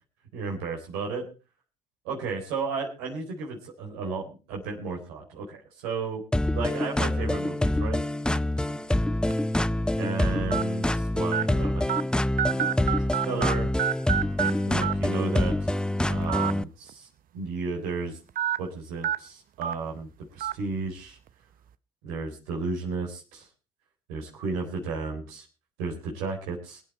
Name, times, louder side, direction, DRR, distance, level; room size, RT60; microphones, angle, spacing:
voice 1, 0.3-1.3 2.0-6.2 6.5-8.0 10.0-11.8 12.5-13.7 14.4-15.7 16.1-17.1 17.3-18.2 18.6-21.2 22.0-23.5 24.1-25.4 25.8-26.8, right 4 dB, 80° right, -1 dB, 3.9 m, -34 dB
sound 1, 6.3-16.6, left 1 dB, 5° left, 0.6 m, -26 dB
sound 2, 8.4-8.6 9.3-9.4 10.5-10.6 11.3-11.4 11.9-12.0 12.4-13.5 13.8-14.5 14.8-14.9 16.2-16.5 16.9-17.0 18.4-18.6 19.0-19.2 19.6-19.7 20.4-20.5, right 10 dB, 50° right, 0.8 m, -27 dB
23.0 x 8.7 x 4.2 m, 0.33 s
hypercardioid pair, 65°, 19 cm